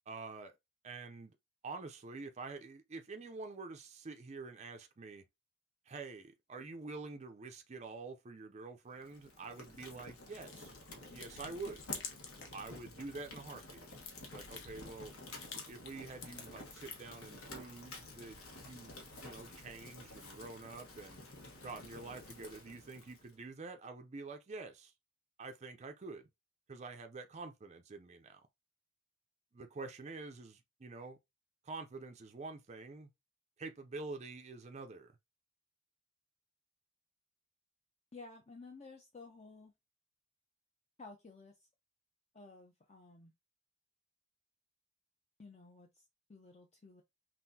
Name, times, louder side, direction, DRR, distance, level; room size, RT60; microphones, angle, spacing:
voice 1, 0.1-0.5 0.8-1.3 1.6-5.2 5.9-10.7 11.0-11.8 12.5-13.8 14.3-15.1 15.7-21.2 21.6-24.9 25.4-26.3 26.7-28.5 29.5-31.2 31.6-33.1 33.6-35.1, right 3 dB, 30° right, 0.5 m, -47 dB
Fire, 9.0-23.4, left 2 dB, 85° left, 1.2 m, -52 dB
sound 1, 9.5-12.6 13.0-17.2, left 5 dB, 55° left, 1.0 m, -50 dB
voice 2, 38.1-39.7 41.0-41.6 42.3-43.3 45.4-46.0 46.3-47.0, left 3 dB, 30° left, 0.6 m, -54 dB
5.6 x 2.5 x 2.7 m
head